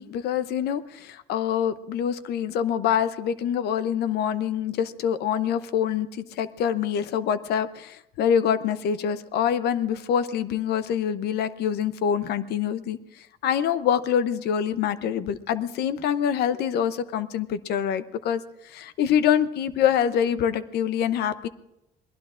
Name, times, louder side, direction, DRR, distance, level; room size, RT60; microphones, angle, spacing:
voice 1, 0.0-21.5, left 8 dB, 75° left, 14 dB, 0.7 m, -25 dB
27.5 x 20.0 x 2.5 m, 0.90 s
cardioid pair, 110°, 17 cm